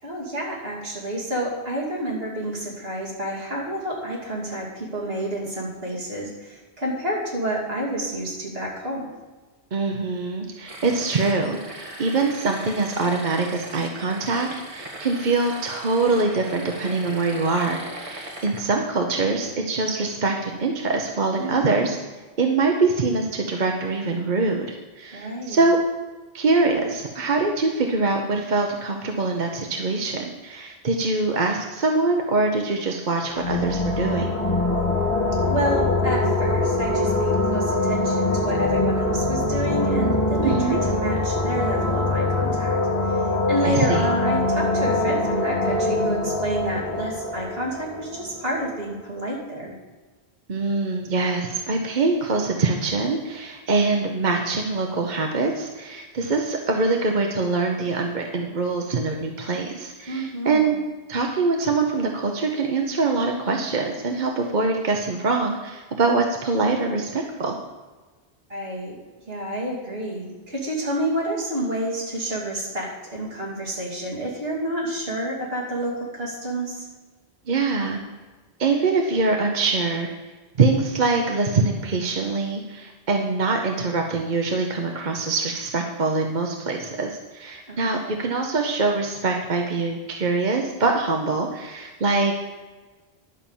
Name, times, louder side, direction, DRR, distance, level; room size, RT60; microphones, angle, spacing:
voice 1, 0.0-9.1 21.3-22.0 25.1-25.6 35.4-42.8 43.0-49.7 60.1-60.8 68.5-69.0 69.3-76.9 87.7-88.3, right 1 dB, 60° right, -4 dB, 2.9 m, -29 dB
voice 2, 9.7-22.0 22.4-25.8 26.3-34.3 40.4-40.8 43.6-44.1 50.5-60.8 61.1-67.6 77.5-78.0 78.6-80.1 80.6-92.4, right 3 dB, 45° right, 2 dB, 0.9 m, -24 dB
sound 1, 10.7-18.6, right 1 dB, 30° right, 1.7 m, -39 dB
sound 2, 33.2-48.8, left 2 dB, 30° left, 1.4 m, -23 dB
11.0 x 5.8 x 7.2 m, 1.3 s
omnidirectional pair, 1.1 m